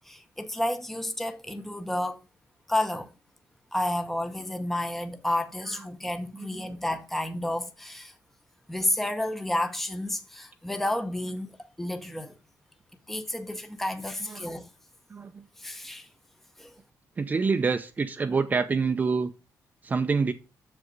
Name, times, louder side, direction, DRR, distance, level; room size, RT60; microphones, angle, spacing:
voice 1, 0.1-2.2 2.7-3.1 3.7-8.1 8.7-12.4 13.1-14.7 15.6-16.1 16.6-16.7, left 1 dB, 5° left, 0.8 m, -31 dB
voice 2, 6.3-6.7 14.3-14.5 15.1-15.4 17.2-19.3 19.8-20.3, right 4 dB, 25° right, 0.6 m, -26 dB
8.0 x 7.0 x 3.9 m
cardioid pair, 140°, 6 cm